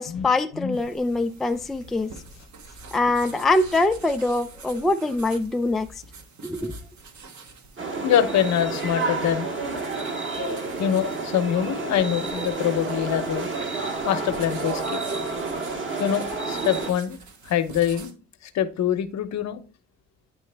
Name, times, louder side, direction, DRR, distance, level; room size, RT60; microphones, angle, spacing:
voice 1, 0.0-2.1 2.9-5.9 6.4-6.7, left 2 dB, ahead, 0.3 m, -23 dB
sound 1, 0.7-18.1, right 4 dB, 70° right, 1.1 m, -46 dB
sound 2, 7.8-16.9, right 3 dB, 40° right, 1.5 m, -30 dB
voice 2, 8.0-9.5 10.4-13.5 14.0-15.0 16.0-17.2 17.4-18.1 18.5-19.6, left 10 dB, 65° left, 0.8 m, -24 dB
9.3 x 3.1 x 3.2 m
cardioid pair, 90°, 30 cm